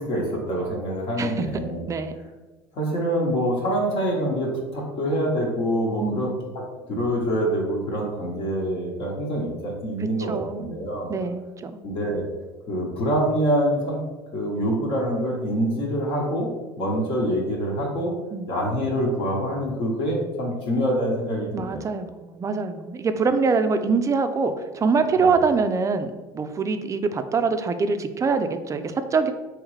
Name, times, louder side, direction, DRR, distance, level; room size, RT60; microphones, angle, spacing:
voice 1, 0.0-1.8 2.7-11.1 11.8-12.2 12.7-14.0 14.3-18.1 18.5-21.8 25.2-25.3, equal, 50° left, -2 dB, 1.1 m, -25 dB
voice 2, 6.0-6.4 10.3-10.7 11.1-11.7 18.3-18.5 21.5-29.3, right 4 dB, 25° right, 9 dB, 0.4 m, -24 dB
3.5 x 3.0 x 3.1 m, 1.2 s
hypercardioid pair, 75°, 12 cm